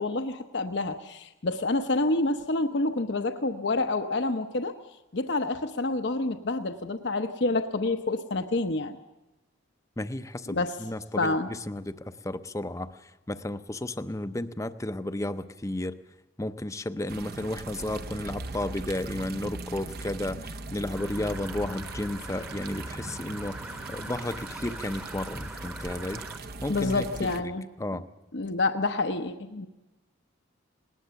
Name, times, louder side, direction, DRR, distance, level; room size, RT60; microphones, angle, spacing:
voice 1, 0.0-4.7 5.1-9.0 10.5-10.7 11.2-11.5 26.7-27.6 28.3-29.7, left 2 dB, 60° left, 7 dB, 0.8 m, -28 dB
voice 2, 10.0-16.0 16.4-27.1 27.4-27.5 27.8-28.0, left 1 dB, 15° left, 11 dB, 0.6 m, -33 dB
sound 1, 17.1-27.4, right 3 dB, 50° right, 0.8 m, -39 dB
sound 2, 20.9-26.4, right 1 dB, 10° right, 1.0 m, -42 dB
19.5 x 19.0 x 6.9 m, 1.0 s
head